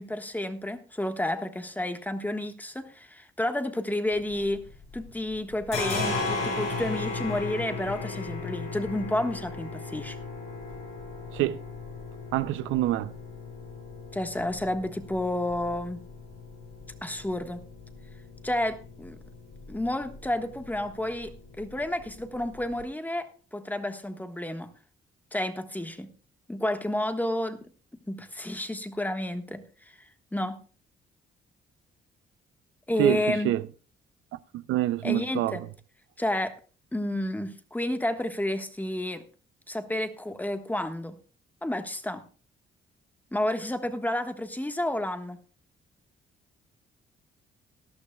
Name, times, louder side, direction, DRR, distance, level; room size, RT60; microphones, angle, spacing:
voice 1, 0.0-4.6 4.9-10.2 14.1-16.0 17.0-17.6 18.4-19.2 19.7-24.7 25.3-26.1 26.5-27.6 28.1-29.6 30.0-30.6 32.9-33.5 35.0-35.6 36.2-36.6 36.9-39.2 39.7-41.2 41.6-42.2 43.3-45.4, left 1 dB, 10° left, 1.4 m, -30 dB
thumbtack strike on low piano strings, 4.1-5.1 5.3-22.8, left 3 dB, 75° left, 7.8 m, -37 dB
voice 2, 12.3-13.1 33.0-33.6 34.5-35.6, right 15 dB, 90° right, 0.5 m, -26 dB
18.5 x 11.5 x 2.3 m
cardioid pair, 90°, 20 cm